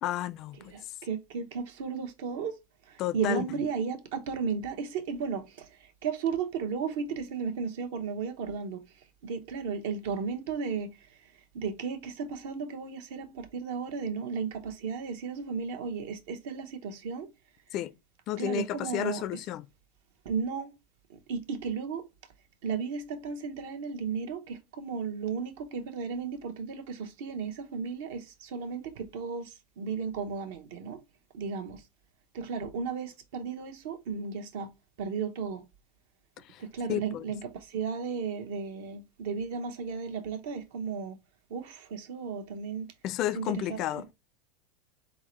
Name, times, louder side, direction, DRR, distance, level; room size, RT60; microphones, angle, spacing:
voice 1, 0.0-0.7 3.0-3.4 17.7-17.9 18.3-19.7 36.5-36.6 36.9-37.3 43.0-44.1, left 12 dB, 45° left, 0.3 m, -32 dB
voice 2, 0.6-2.6 3.1-5.4 6.0-8.8 9.2-10.9 11.5-17.3 18.4-19.4 20.2-20.7 21.3-22.1 22.6-31.0 31.3-31.8 32.3-34.7 35.0-35.6 36.6-41.2 41.5-42.9 43.3-44.1, right 6 dB, 75° right, 1.0 m, -34 dB
4.2 x 3.7 x 3.1 m
supercardioid pair, 140°, 0 cm